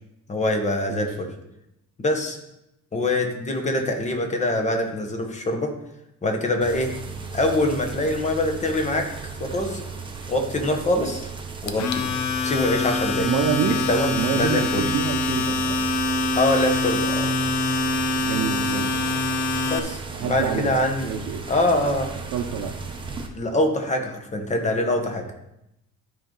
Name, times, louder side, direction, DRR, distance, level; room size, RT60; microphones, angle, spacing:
voice 1, 0.3-1.3 2.0-2.4 2.9-5.8 6.2-6.9 7.3-9.1 9.4-9.8 10.3-11.3 11.6-12.1 12.4-13.3 13.6-14.9 16.4-17.3 19.7-21.1 21.5-22.1 23.3-25.3, left 1 dB, 20° left, 4 dB, 1.3 m, -24 dB
sound 1, 6.6-23.3, right 4 dB, 15° right, 0.9 m, -36 dB
Domestic sounds home sounds, 11.7-19.8, left 2 dB, 60° left, 0.8 m, -25 dB
voice 2, 13.2-13.8 14.1-15.8 18.1-18.9 20.1-20.7 21.0-21.4 22.3-22.7, right 7 dB, 85° right, -1 dB, 1.0 m, -27 dB
12.5 x 5.3 x 4.0 m, 0.85 s
cardioid pair, 155°, 32 cm